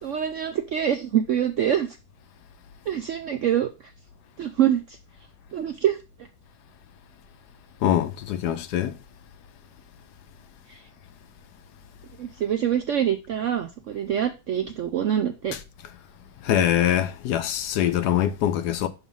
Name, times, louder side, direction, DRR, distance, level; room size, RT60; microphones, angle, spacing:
voice 1, 0.0-1.9 2.9-3.7 4.4-5.0 5.5-6.0 10.7-10.8 12.2-15.5, right 10 dB, 75° right, 0.7 m, -25 dB
voice 2, 7.8-9.0 15.5-15.6 16.4-18.9, left 11 dB, 75° left, 1.2 m, -23 dB
6.1 x 3.9 x 5.3 m
omnidirectional pair, 1.8 m